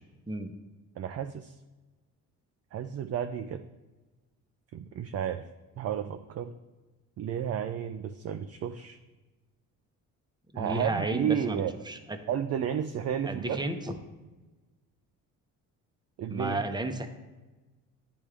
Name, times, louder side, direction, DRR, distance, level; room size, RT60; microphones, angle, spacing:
voice 1, 1.0-1.5 2.7-3.6 4.7-5.4 5.8-6.5 7.2-9.0 10.6-11.7 12.3-13.6 16.2-16.6, right 9 dB, 40° right, 8 dB, 0.4 m, -32 dB
voice 2, 10.5-12.2 13.2-14.0 16.3-17.1, right 2 dB, 10° right, 6 dB, 0.8 m, -33 dB
9.8 x 3.4 x 3.4 m, 1.2 s
hypercardioid pair, 55°, 41 cm